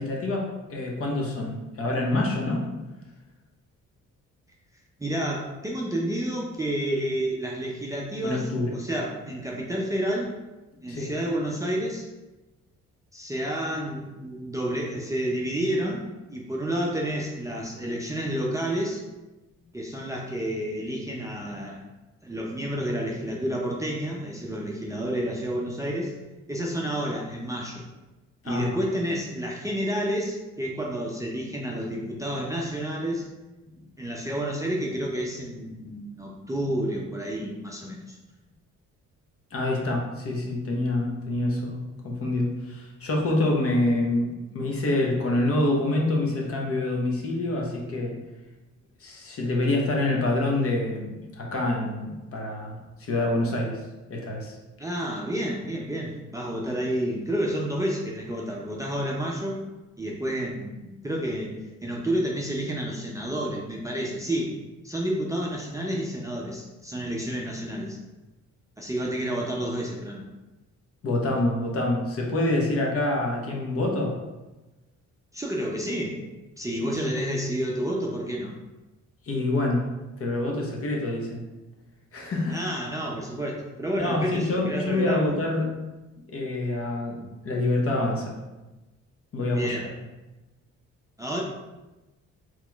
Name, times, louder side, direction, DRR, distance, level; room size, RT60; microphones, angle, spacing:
voice 1, 0.0-2.6 8.2-8.8 10.9-11.1 28.4-28.8 39.5-48.2 49.0-53.8 54.1-54.6 71.0-74.1 77.0-77.1 79.3-79.9 80.2-81.4 82.1-82.6 84.0-85.7 86.3-88.4 89.3-89.7, left 2 dB, 50° left, -1 dB, 0.9 m, -26 dB
voice 2, 5.0-10.3 10.8-12.1 13.1-19.0 19.7-21.9 22.2-26.1 26.5-27.9 28.4-33.3 34.0-38.2 54.8-59.6 60.0-64.6 64.8-68.0 68.8-70.3 75.3-76.2 76.6-78.6 82.5-85.3 89.5-89.9 91.2-91.4, right 1 dB, 10° right, -2 dB, 0.5 m, -30 dB
4.1 x 3.0 x 2.3 m, 1.1 s
cardioid pair, 90°, 30 cm